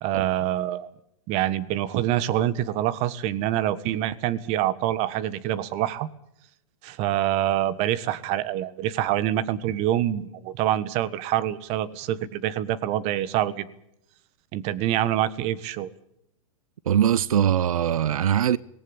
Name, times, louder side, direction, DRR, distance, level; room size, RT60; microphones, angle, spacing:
voice 1, 0.0-0.9 1.3-6.1 6.8-13.7 14.5-15.9, right 12 dB, 40° right, 1.5 m, -26 dB
voice 2, 16.9-18.6, right 9 dB, 85° right, 0.7 m, -21 dB
19.0 x 18.0 x 8.9 m
hypercardioid pair, 135°, 18 cm